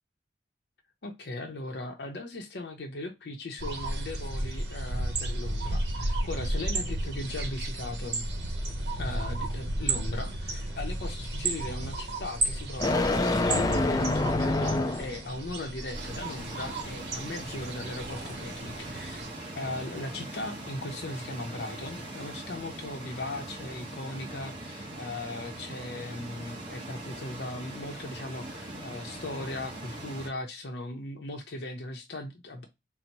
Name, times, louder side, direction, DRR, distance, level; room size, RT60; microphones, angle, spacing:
voice 1, 1.0-8.3 9.0-19.2 19.6-32.7, left 2 dB, 65° left, 0.6 m, -38 dB
sound 1, 3.6-19.3, right 2 dB, 65° right, 1.0 m, -33 dB
sound 2, 8.3-15.2, left 2 dB, 20° left, 0.3 m, -29 dB
sound 3, 15.9-30.3, right 2 dB, 30° right, 1.0 m, -41 dB
4.0 x 2.0 x 4.4 m
head